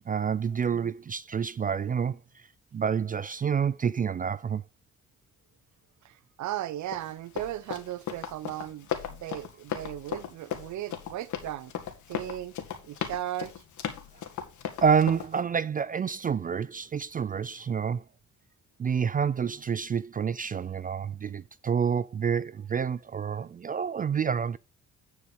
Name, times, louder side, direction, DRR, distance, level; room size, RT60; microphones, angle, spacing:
voice 1, 0.1-2.2 2.7-4.6 14.8-18.0 18.8-24.6, right 7 dB, 30° right, 0.4 m, -28 dB
voice 2, 6.0-11.7 12.1-12.5 12.8-13.5, right 13 dB, 70° right, 0.7 m, -36 dB
Run, 6.9-15.4, left 9 dB, 75° left, 2.0 m, -37 dB
10.0 x 4.8 x 5.5 m
cardioid pair, 90°, 30 cm